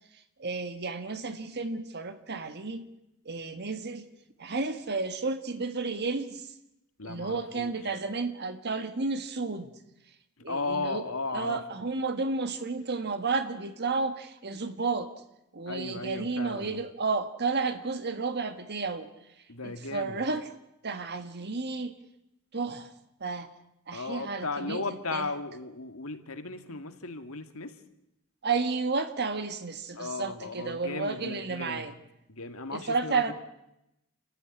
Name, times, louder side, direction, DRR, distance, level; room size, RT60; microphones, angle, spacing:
voice 1, 0.1-2.9 3.2-4.1 4.4-6.5 7.0-9.7 10.4-15.1 15.5-19.1 19.4-20.5 20.8-22.0 22.5-22.9 23.2-23.5 23.9-25.3 28.4-31.9 32.7-33.3, right 4 dB, 50° right, 9 dB, 1.6 m, -32 dB
voice 2, 7.0-7.7 10.5-11.6 15.7-16.8 19.5-20.2 23.9-27.7 30.0-31.9 32.3-33.3, left 3 dB, 70° left, 8 dB, 2.4 m, -36 dB
29.5 x 15.0 x 9.9 m, 0.87 s
head